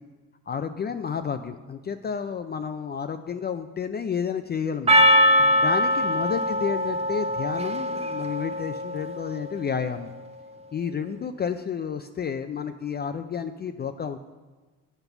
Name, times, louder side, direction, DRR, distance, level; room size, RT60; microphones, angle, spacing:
voice 1, 0.5-5.1 5.6-10.1 10.7-14.2, left 7 dB, 35° left, 9 dB, 0.4 m, -31 dB
Percussion, 4.9-9.5, equal, 20° right, 0.8 m, -22 dB
8.0 x 5.3 x 5.8 m, 1.3 s
cardioid pair, 90°, 30 cm